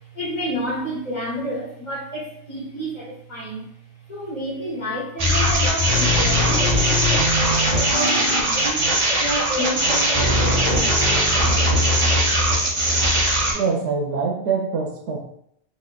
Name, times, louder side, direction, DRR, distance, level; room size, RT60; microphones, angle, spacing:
voice 1, 0.1-3.7 4.1-8.9 9.2-11.1, equal, 45° left, -5 dB, 1.0 m, -30 dB
sound 1, 5.2-13.5, equal, 35° right, 0.6 m, -19 dB
voice 2, 13.5-15.3, right 5 dB, 75° right, 0 dB, 0.8 m, -24 dB
4.0 x 2.6 x 2.3 m, 0.70 s
omnidirectional pair, 1.1 m